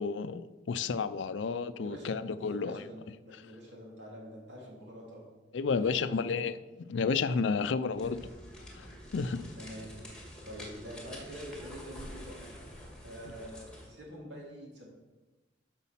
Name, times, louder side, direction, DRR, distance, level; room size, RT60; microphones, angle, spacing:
voice 1, 0.0-2.9 5.5-8.3 8.7-9.5, left 5 dB, 85° left, 13 dB, 0.4 m, -32 dB
voice 2, 1.8-2.1 2.4-5.2 5.5-5.6 5.9-6.3 7.5-7.6 7.9-8.0 9.6-9.9 10.4-12.4 13.0-14.9, equal, 75° right, -2 dB, 2.7 m, -46 dB
sound 1, 7.9-14.0, equal, 5° left, 1.7 m, -47 dB
8.3 x 6.2 x 5.7 m, 1.2 s
head